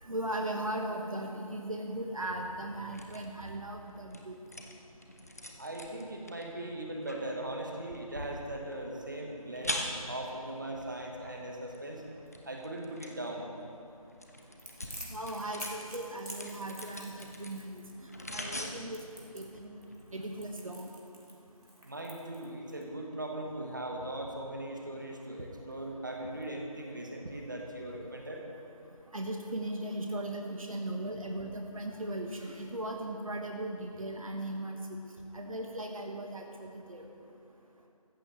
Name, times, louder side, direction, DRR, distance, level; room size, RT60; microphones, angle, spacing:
voice 1, 0.0-4.3 15.1-17.8 18.3-19.0 19.3-19.7 20.1-20.9 29.1-35.0 35.3-37.0, right 1 dB, 65° right, 2 dB, 1.4 m, -38 dB
sound 1, 1.9-20.4, left 1 dB, 25° left, 0.7 m, -45 dB
voice 2, 5.6-12.0 12.5-13.5 21.9-28.4, right 1 dB, 30° right, 1 dB, 1.2 m, -39 dB
Crackle, 14.6-22.8, equal, 85° right, 3.3 m, -48 dB
15.5 x 14.5 x 3.1 m, 2.6 s
figure-of-eight pair, 165°, 19 cm